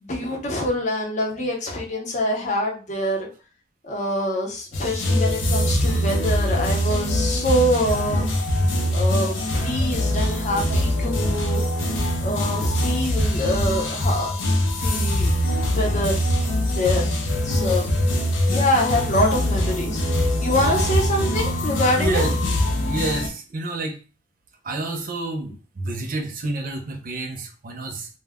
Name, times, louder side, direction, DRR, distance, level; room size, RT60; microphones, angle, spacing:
voice 1, 0.0-3.3 3.8-8.2 8.9-11.6 12.2-14.3 14.7-15.4 15.6-16.2 16.7-17.1 17.4-17.9 18.5-22.2, left 1 dB, 40° left, 0 dB, 0.6 m, -25 dB
sound 1, 4.7-23.3, left 1 dB, 85° left, 0.6 m, -23 dB
voice 2, 20.5-20.9 22.0-22.3 22.8-24.0 24.6-28.1, right 2 dB, 45° right, 3 dB, 0.6 m, -29 dB
2.2 x 2.1 x 3.4 m, 0.35 s
head